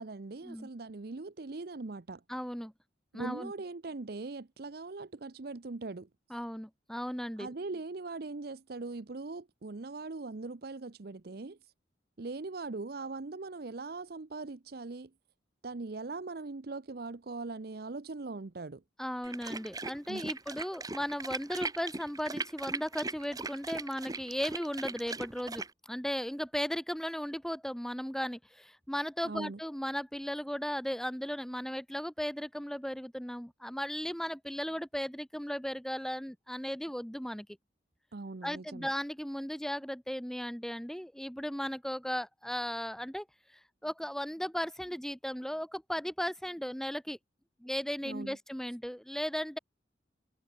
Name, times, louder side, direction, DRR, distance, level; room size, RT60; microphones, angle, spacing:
voice 1, 0.0-2.2 3.1-6.4 7.4-11.7 12.2-15.1 15.6-18.8 20.1-20.3 29.2-29.6 38.1-38.9 48.0-48.4, right 3 dB, 55° right, 0.7 m, -41 dB
voice 2, 2.3-2.7 3.1-3.5 6.3-7.5 19.0-37.5 38.4-43.3 43.5-47.2 47.6-49.6, equal, 5° left, 0.9 m, -36 dB
Large Dog Drinking, 19.2-25.7, right 3 dB, 20° right, 2.5 m, -39 dB
head